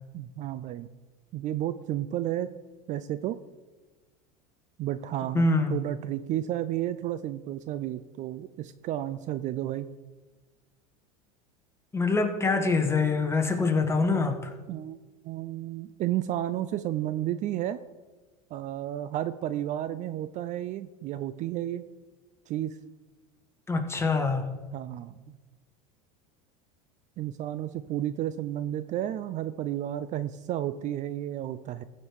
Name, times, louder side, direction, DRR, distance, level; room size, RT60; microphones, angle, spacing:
voice 1, 0.1-0.9 1.3-2.5 2.9-3.4 4.8-9.9 14.7-15.0 15.2-17.8 18.5-21.8 22.5-22.8 24.7-25.2 27.2-31.8, right 12 dB, 40° right, 13 dB, 0.5 m, -32 dB
voice 2, 5.3-5.8 11.9-14.5 23.7-24.4, left 3 dB, 15° left, 4 dB, 1.5 m, -25 dB
14.5 x 5.3 x 4.7 m, 1.2 s
hypercardioid pair, 100°, 19 cm